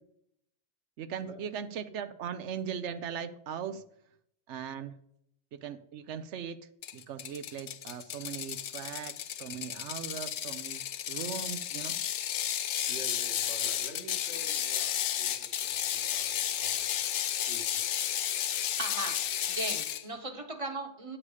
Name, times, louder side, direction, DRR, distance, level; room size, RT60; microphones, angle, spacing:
voice 1, 1.0-3.8 4.5-5.0 5.5-6.6 6.9-11.9, right 8 dB, 90° right, 11 dB, 1.0 m, -39 dB
Ratchet pawl, 6.8-20.0, left 10 dB, 80° left, 0.9 m, -33 dB
voice 2, 12.9-17.0 17.5-17.9, right 2 dB, 75° right, 2 dB, 2.1 m, -48 dB
voice 3, 18.8-19.2 19.5-21.2, right 2 dB, 30° right, 7 dB, 1.0 m, -37 dB
9.6 x 7.4 x 4.9 m, 0.72 s
omnidirectional pair, 1.2 m